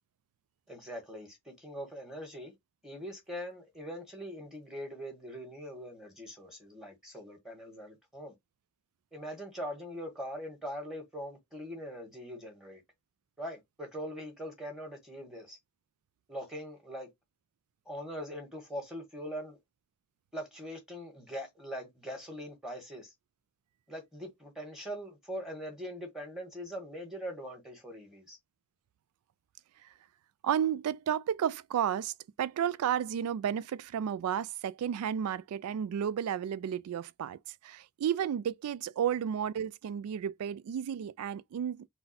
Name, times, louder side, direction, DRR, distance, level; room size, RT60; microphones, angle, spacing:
voice 1, 0.7-2.5 2.8-8.3 9.1-12.8 13.4-15.6 16.3-17.1 17.8-19.6 20.3-23.1 23.9-28.4, equal, ahead, 1.5 m, -42 dB
voice 2, 30.4-41.9, right 9 dB, 80° right, 0.3 m, -32 dB
3.9 x 2.2 x 4.2 m
head